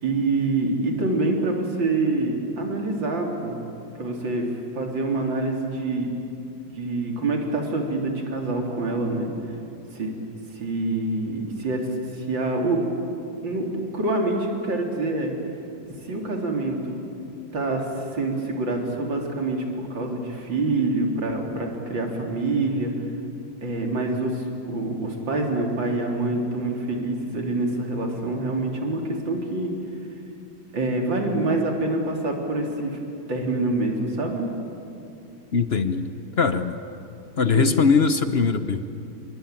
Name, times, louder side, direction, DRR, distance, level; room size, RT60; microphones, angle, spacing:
voice 1, 0.0-3.6 4.0-6.1 6.7-9.3 9.9-10.1 10.5-12.8 13.4-13.7 13.9-15.3 16.0-17.0 17.5-17.9 18.1-22.9 23.6-29.7 30.7-33.0 33.3-34.5 37.5-37.8, right 2 dB, 70° right, 1 dB, 4.0 m, -26 dB
voice 2, 35.5-36.8 37.4-38.8, left 5 dB, 50° left, 10 dB, 0.8 m, -21 dB
27.5 x 22.5 x 9.1 m, 2.7 s
omnidirectional pair, 2.1 m